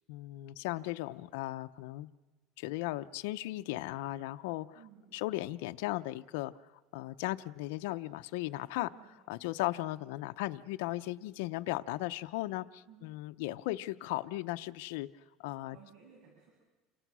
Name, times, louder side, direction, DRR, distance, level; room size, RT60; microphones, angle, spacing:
voice 1, 0.1-2.1 2.6-4.8 5.1-6.5 6.9-8.9 9.3-15.1 15.4-15.8, left 17 dB, 85° left, 9 dB, 0.7 m, -36 dB
voice 2, 4.7-5.2 8.9-9.2 12.9-13.1 15.7-16.5, right 7 dB, 70° right, -2 dB, 8.0 m, -58 dB
29.5 x 26.0 x 6.2 m, 1.2 s
supercardioid pair, 125°, 0 cm